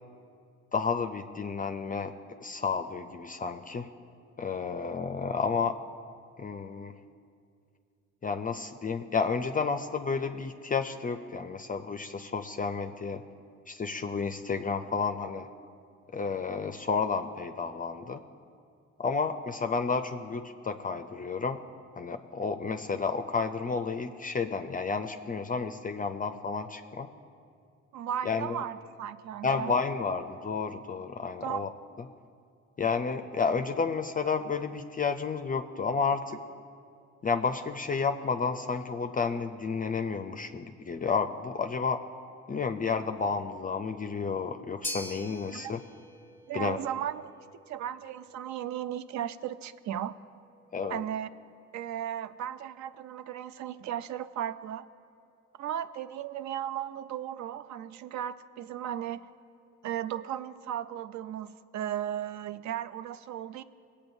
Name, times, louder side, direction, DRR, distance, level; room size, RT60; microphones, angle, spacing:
voice 1, 0.7-2.1 2.4-3.9 4.4-5.8 6.4-6.9 8.2-13.2 13.7-15.5 16.1-18.2 19.0-21.6 22.0-27.1 28.3-28.6 29.4-31.7 32.8-36.4 37.2-42.0 42.5-45.8 46.5-46.8 50.7-51.0, left 5 dB, 30° left, 7 dB, 0.4 m, -31 dB
voice 2, 27.9-29.7 31.4-31.7 45.4-45.7 46.5-50.2 50.9-51.3 51.7-54.9 55.6-59.3 59.8-63.6, right 10 dB, 70° right, 14 dB, 0.5 m, -36 dB
sound 1, 44.8-53.2, left 1 dB, 5° left, 0.8 m, -46 dB
18.5 x 8.5 x 2.6 m, 2.4 s
cardioid pair, 90°, 30 cm